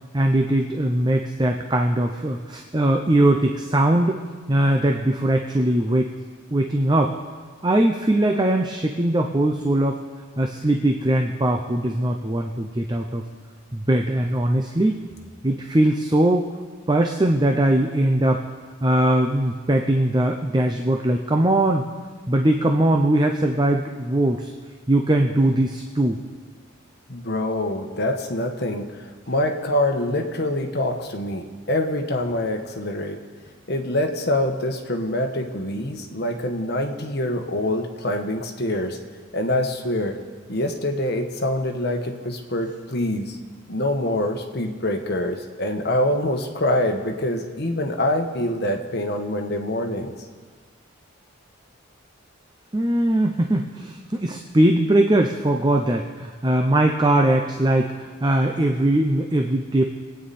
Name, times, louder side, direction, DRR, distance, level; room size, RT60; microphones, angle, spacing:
voice 1, 0.1-4.2 4.5-6.1 6.5-7.1 7.6-10.0 10.4-13.2 13.7-15.0 15.4-16.4 16.9-18.4 18.8-21.9 22.3-24.5 24.9-26.2 52.7-59.9, right 1 dB, 20° right, 3 dB, 0.6 m, -20 dB
voice 2, 27.1-28.9 29.3-33.2 33.7-39.0 39.3-40.2 40.5-43.4 43.7-50.1, left 1 dB, 50° left, 3 dB, 1.4 m, -25 dB
24.5 x 9.1 x 4.3 m, 1.5 s
head